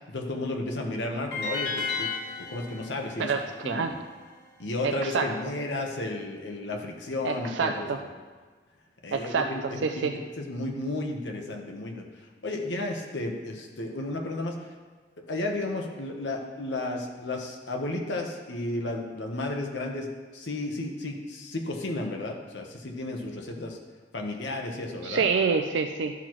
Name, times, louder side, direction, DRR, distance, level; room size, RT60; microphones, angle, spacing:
voice 1, 0.1-2.1 2.4-3.3 3.6-4.0 4.6-8.1 9.0-14.6 15.2-23.8 24.1-25.3, left 2 dB, 75° left, 2 dB, 1.1 m, -33 dB
sound 1, 1.3-4.5, left 4 dB, 60° left, 1.6 m, -34 dB
voice 2, 3.2-3.9 4.8-5.3 7.2-8.0 9.1-9.6 9.8-10.1 25.0-26.1, right 5 dB, 80° right, 6 dB, 0.4 m, -27 dB
12.5 x 5.9 x 3.1 m, 1.4 s
head